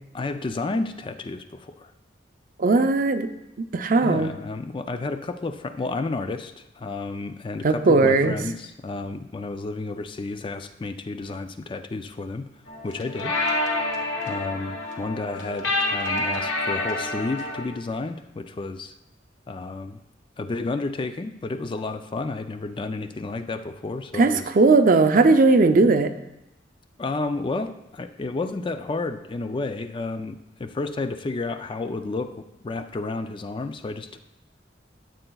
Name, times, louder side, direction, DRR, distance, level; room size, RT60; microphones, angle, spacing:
voice 1, 0.1-1.9 4.0-12.5 12.8-13.3 14.3-18.9 19.5-20.0 20.4-24.5 27.0-34.2, left 3 dB, 25° left, 9 dB, 0.3 m, -31 dB
voice 2, 2.6-3.3 3.7-4.3 7.6-8.4 24.1-26.1, right 3 dB, 50° right, 8 dB, 0.5 m, -18 dB
sound 1, 12.7-17.7, left 2 dB, 80° left, 1.3 m, -28 dB
12.5 x 7.8 x 2.3 m, 0.90 s
head